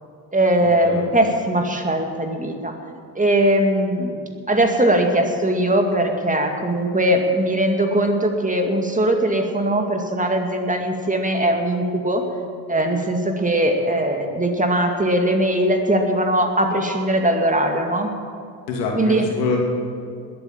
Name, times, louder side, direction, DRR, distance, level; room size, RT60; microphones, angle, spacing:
voice 1, 0.3-2.7 3.2-12.2 12.7-18.1 18.9-19.2, right 1 dB, 15° right, 4 dB, 2.3 m, -20 dB
voice 2, 18.7-19.6, left 4 dB, 80° left, 0 dB, 2.8 m, -25 dB
20.5 x 8.5 x 7.4 m, 2.3 s
hypercardioid pair, 60°, 49 cm